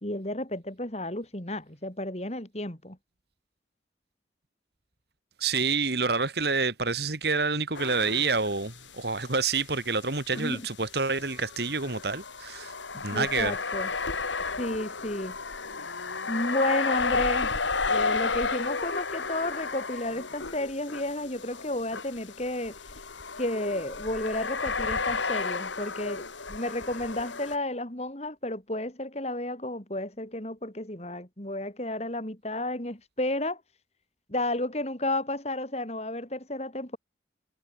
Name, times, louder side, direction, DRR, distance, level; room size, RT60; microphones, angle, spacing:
voice 1, 0.0-3.0 10.3-10.7 12.9-13.9 14.6-15.4 16.3-17.5 17.9-22.8 23.4-26.2 26.5-33.6 34.3-37.0, left 1 dB, 35° left, 3.1 m, -32 dB
voice 2, 5.4-12.7 13.0-13.6, right 4 dB, 60° right, 2.3 m, -28 dB
sound 1, 7.7-8.9 9.2-9.3 10.3-27.6, left 4 dB, 90° left, 3.2 m, -32 dB
head